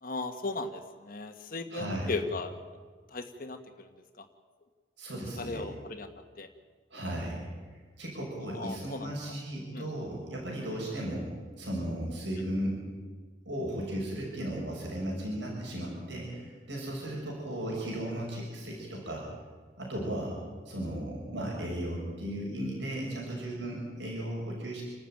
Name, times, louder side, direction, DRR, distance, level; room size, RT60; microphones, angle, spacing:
voice 1, 0.0-2.5 3.1-3.9 4.2-4.3 5.4-6.1 6.4-6.5 8.5-9.1 9.7-9.9, left 3 dB, 50° left, 6 dB, 1.5 m, -36 dB
voice 2, 1.7-2.1 5.0-5.6 6.9-7.4 8.0-11.3 11.6-12.8 13.4-19.3 19.8-20.4 20.6-24.9, right 1 dB, 75° right, -3 dB, 6.9 m, -35 dB
28.5 x 13.0 x 9.2 m, 1.5 s
head